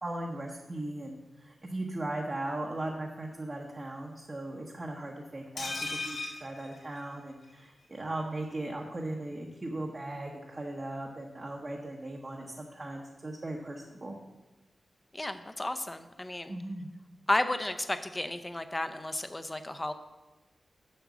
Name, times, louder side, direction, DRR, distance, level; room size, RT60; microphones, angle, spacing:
voice 1, 0.0-5.7 6.0-14.2 16.5-16.9, right 1 dB, 30° right, -1 dB, 0.9 m, -38 dB
sound 1, 5.6-7.5 7.8-7.9 8.2-8.3, left 3 dB, 70° left, 3.1 m, -38 dB
voice 2, 15.1-16.6 17.3-19.9, left 1 dB, 15° left, 9 dB, 0.6 m, -32 dB
7.6 x 6.0 x 7.1 m, 1.1 s
wide cardioid pair, 130°, 0 cm